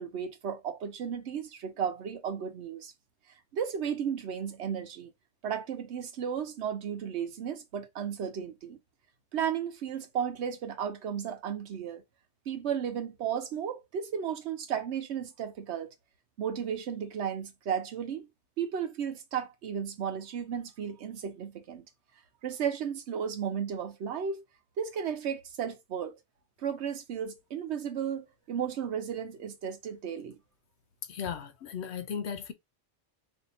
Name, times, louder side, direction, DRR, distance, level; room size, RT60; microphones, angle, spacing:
voice 1, 0.0-2.9 3.5-5.1 5.4-8.8 9.3-12.0 12.5-15.9 16.4-18.3 18.6-21.8 22.4-24.4 24.8-26.2 26.6-30.4, right 8 dB, 70° right, 0.9 m, -34 dB
voice 2, 31.1-32.5, left 7 dB, 70° left, 0.9 m, -36 dB
2.6 x 2.6 x 4.1 m
omnidirectional pair, 1.2 m